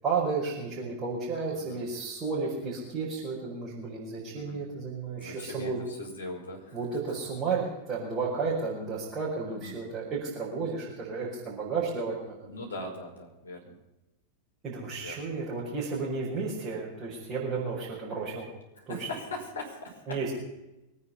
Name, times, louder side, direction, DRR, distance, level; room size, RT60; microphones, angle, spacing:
voice 1, 0.0-5.8 6.7-12.5 14.6-18.5 18.9-19.0 20.1-20.3, right 4 dB, 25° right, -7 dB, 5.6 m, -32 dB
voice 2, 5.2-6.8 9.5-9.8 12.5-13.7 15.0-15.2 18.8-20.3, left 2 dB, 70° left, -1 dB, 5.4 m, -40 dB
24.0 x 9.8 x 5.7 m, 0.95 s
figure-of-eight pair, 90°, 0 cm